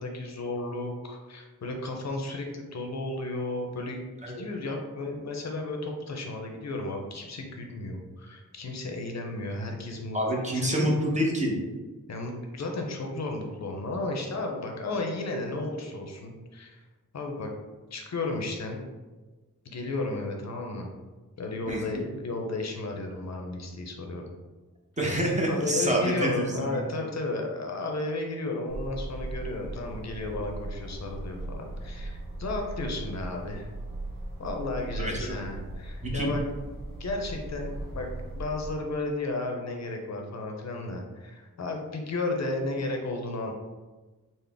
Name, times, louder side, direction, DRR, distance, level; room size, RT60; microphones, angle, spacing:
voice 1, 0.0-10.2 10.5-10.9 12.1-16.8 17.1-17.5 17.9-18.8 19.6-20.9 21.4-24.2 25.5-33.7 34.4-36.4 37.0-38.1 38.3-43.5, left 2 dB, 55° left, 2 dB, 0.5 m, -33 dB
voice 2, 10.1-11.5 21.7-22.0 25.0-26.8 35.0-35.4 36.0-36.3, right 1 dB, 20° right, -2 dB, 0.7 m, -27 dB
sound 1, 28.7-38.8, right 2 dB, 85° right, 0.8 m, -38 dB
3.8 x 2.0 x 3.3 m, 1.2 s
wide cardioid pair, 115°, 33 cm